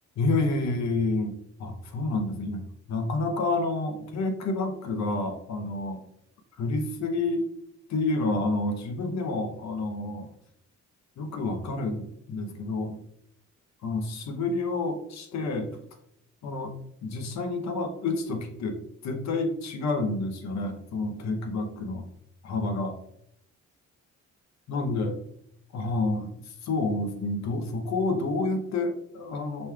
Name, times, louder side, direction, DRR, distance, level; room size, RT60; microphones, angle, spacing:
voice 1, 0.2-1.3 1.6-6.0 6.6-7.5 7.9-10.3 11.2-13.0 13.8-15.7 16.4-16.7 17.0-22.0 22.4-23.0 24.7-25.2 25.7-29.7, left 2 dB, 65° left, 5 dB, 0.8 m, -29 dB
5.1 x 3.1 x 2.3 m, 0.75 s
cardioid pair, 90°, 30 cm